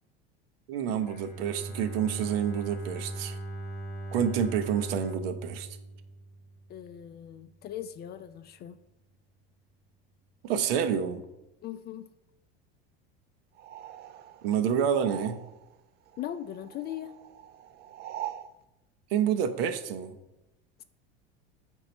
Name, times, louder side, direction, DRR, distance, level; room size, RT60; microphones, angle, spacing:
voice 1, 0.7-3.4 4.1-5.7 10.4-11.2 14.4-15.4 19.1-20.2, right 8 dB, 70° right, 10 dB, 0.8 m, -28 dB
Bowed string instrument, 1.0-7.0, right 2 dB, 10° left, 1.2 m, -39 dB
voice 2, 6.7-8.8 11.6-12.0 16.2-17.1 20.8-20.9, left 11 dB, 35° left, 12 dB, 0.4 m, -39 dB
sound 1, 13.6-15.8 16.1-18.5, right 12 dB, 35° right, 0.4 m, -43 dB
4.5 x 3.9 x 5.4 m, 0.93 s
hypercardioid pair, 85°, 31 cm